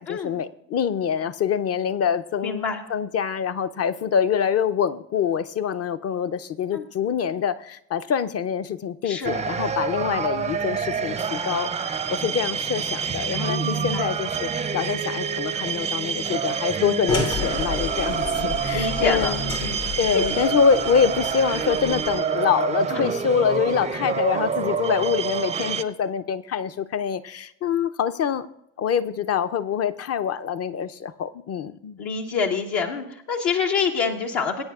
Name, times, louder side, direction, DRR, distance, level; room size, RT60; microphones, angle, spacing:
voice 1, 0.0-19.5 20.0-28.5 28.8-32.0, left 7 dB, 35° left, 12 dB, 0.5 m, -25 dB
voice 2, 2.4-2.8 6.7-6.8 9.0-9.4 13.5-14.1 18.7-19.8 20.1-20.2 20.5-20.6 22.9-23.0 32.0-34.6, left 5 dB, 65° left, 2 dB, 1.0 m, -26 dB
sound 1, 9.2-25.8, right 6 dB, 15° right, 0.4 m, -27 dB
sound 2, 17.1-22.2, left 4 dB, 80° left, 2.1 m, -31 dB
20.5 x 8.7 x 2.4 m, 0.77 s
hypercardioid pair, 55°, 42 cm